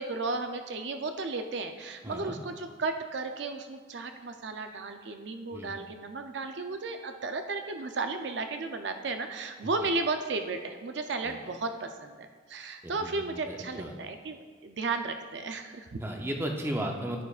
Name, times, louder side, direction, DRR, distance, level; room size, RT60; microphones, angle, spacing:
voice 1, 0.0-16.0, right 3 dB, 60° right, 6 dB, 0.5 m, -34 dB
voice 2, 2.0-2.4 5.5-5.8 9.6-9.7 11.2-11.3 12.8-13.9 16.0-17.2, right 1 dB, 10° right, 2 dB, 0.7 m, -35 dB
10.5 x 9.2 x 2.4 m, 1.5 s
head